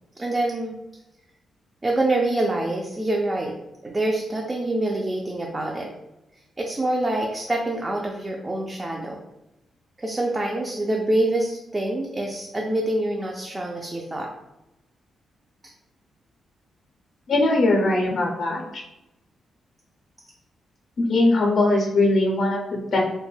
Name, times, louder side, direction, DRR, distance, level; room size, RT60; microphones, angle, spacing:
voice 1, 0.2-0.8 1.8-3.5 3.8-5.9 6.6-9.2 10.0-14.3, right 1 dB, 20° right, 0 dB, 0.3 m, -25 dB
voice 2, 17.3-18.8 21.0-23.0, left 2 dB, 55° left, 0 dB, 0.4 m, -21 dB
2.2 x 2.1 x 3.1 m, 0.95 s
cardioid pair, 100°, 0 cm